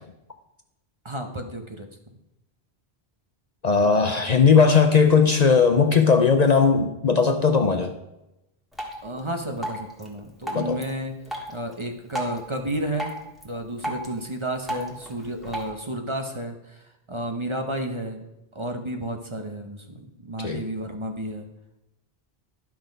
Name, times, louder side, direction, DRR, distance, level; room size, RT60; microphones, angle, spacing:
voice 1, 1.0-1.9 9.0-11.1 11.5-13.1 13.4-18.2 18.5-21.5, right 1 dB, 30° right, 5 dB, 0.8 m, -32 dB
voice 2, 3.6-7.9 10.5-10.8 20.4-20.6, left 5 dB, 50° left, 6 dB, 0.6 m, -18 dB
Drip, 8.7-15.7, equal, ahead, 1.5 m, -36 dB
11.0 x 5.9 x 5.1 m, 0.92 s
omnidirectional pair, 1.0 m